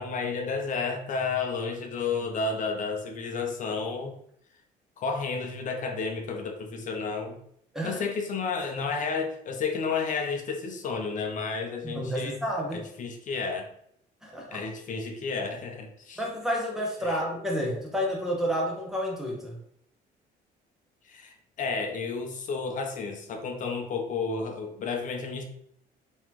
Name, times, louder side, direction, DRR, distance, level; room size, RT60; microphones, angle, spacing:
voice 1, 0.0-4.1 5.0-7.4 7.8-12.4 12.7-13.7 14.5-16.2 17.0-17.2 21.0-25.4, left 4 dB, 50° left, 4 dB, 0.7 m, -31 dB
voice 2, 11.8-12.8 14.2-14.6 16.2-19.6, equal, 5° right, -2 dB, 1.1 m, -30 dB
3.8 x 3.1 x 3.0 m, 0.71 s
cardioid pair, 110°, 17 cm